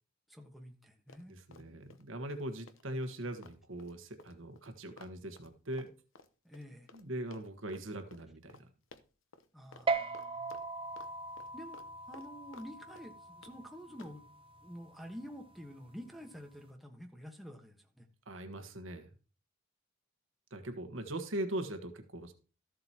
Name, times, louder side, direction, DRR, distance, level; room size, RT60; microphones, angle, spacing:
voice 1, 0.3-1.8 6.4-6.9 9.5-10.6 11.5-11.8 12.1-14.3 14.6-18.1, equal, ahead, 2 dB, 1.3 m, -49 dB
Run, 1.1-2.0 2.3-7.1 7.3-7.8 8.1-8.2 8.5-8.6 8.9-9.5 9.7-9.9 10.1-11.1 11.4-12.7 13.0-13.6 14.0-14.2, left 4 dB, 75° left, 0.9 m, -56 dB
voice 2, 1.3-5.9 6.9-8.6 18.3-19.1 20.5-22.3, right 1 dB, 75° right, 6 dB, 1.4 m, -40 dB
sound 1, 9.9-16.7, right 3 dB, 25° right, 0.7 m, -40 dB
13.5 x 7.7 x 2.9 m, 0.36 s
head